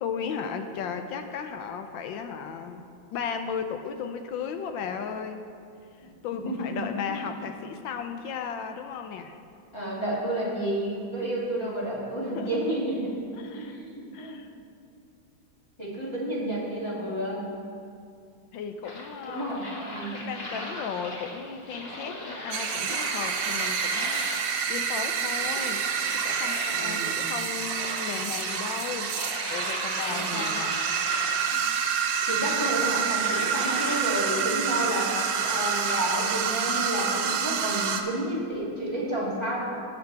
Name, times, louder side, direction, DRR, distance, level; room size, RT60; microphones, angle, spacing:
voice 1, 0.0-5.4 6.0-9.4 11.2-11.3 12.3-12.8 13.3-13.8 14.1-14.5 18.5-19.8 20.1-24.4 24.7-25.8 26.1-30.9 31.2-31.7 32.1-32.3, left 6 dB, 75° left, 7 dB, 1.3 m, -35 dB
voice 2, 6.3-6.8 9.7-13.3 13.5-14.4 15.8-17.4 19.3-20.3 26.7-27.2 30.1-30.5 32.3-35.1 35.4-39.6, right 1 dB, 15° left, -7 dB, 2.4 m, -31 dB
sound 1, 18.8-36.1, left 1 dB, 35° left, 1.4 m, -39 dB
sound 2, 22.5-38.0, right 7 dB, 80° right, 1.6 m, -28 dB
17.5 x 6.8 x 3.4 m, 2.5 s
omnidirectional pair, 2.2 m